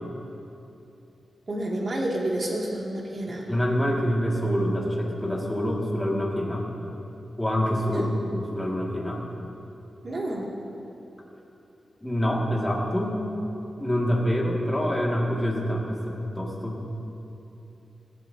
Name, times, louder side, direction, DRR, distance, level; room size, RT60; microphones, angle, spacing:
voice 1, 1.5-3.5 7.8-8.1 10.0-10.5, right 1 dB, 40° right, -2 dB, 2.2 m, -29 dB
voice 2, 3.5-6.7 7.4-9.2 12.0-13.2 13.8-16.8, equal, 10° left, -2 dB, 1.9 m, -26 dB
19.0 x 15.0 x 2.7 m, 2.9 s
wide cardioid pair, 135°, 0 cm